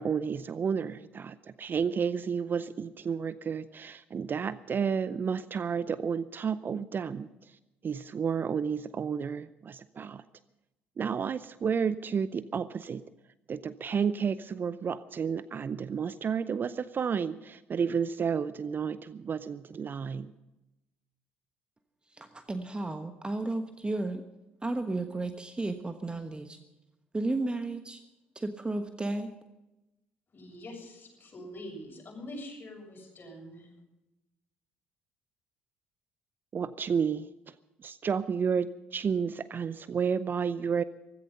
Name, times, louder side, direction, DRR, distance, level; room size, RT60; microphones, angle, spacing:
voice 1, 0.0-7.3 7.8-10.2 11.0-13.0 13.5-20.3 36.5-37.3 37.8-40.8, right 6 dB, 40° right, 16 dB, 0.6 m, -31 dB
voice 2, 22.2-24.2 24.6-26.6 27.1-28.0 28.3-29.3, right 2 dB, 20° right, 8 dB, 1.2 m, -33 dB
voice 3, 30.3-33.7, left 1 dB, 35° left, 0 dB, 7.5 m, -44 dB
16.0 x 15.0 x 5.5 m, 0.97 s
figure-of-eight pair, 50°, 5 cm